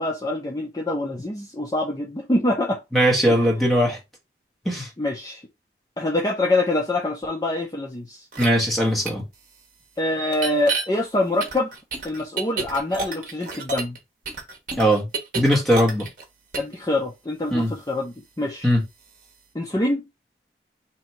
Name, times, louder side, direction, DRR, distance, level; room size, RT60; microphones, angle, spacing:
voice 1, 0.0-2.8 3.3-3.5 5.0-5.4 6.0-8.2 10.0-11.7 12.0-14.0 16.6-18.7 19.5-20.1, left 1 dB, 20° left, 0.6 m, -25 dB
voice 2, 2.9-4.0 4.6-4.9 8.4-9.2 14.8-15.1 15.3-16.1 17.5-17.7 18.6-18.8, equal, ahead, 1.1 m, -19 dB
sound 1, 8.3-8.5 9.1-9.2 10.3-10.8 11.4-14.0 14.3-16.2 16.5-16.7, right 4 dB, 50° right, 1.0 m, -29 dB
2.9 x 2.8 x 4.4 m
head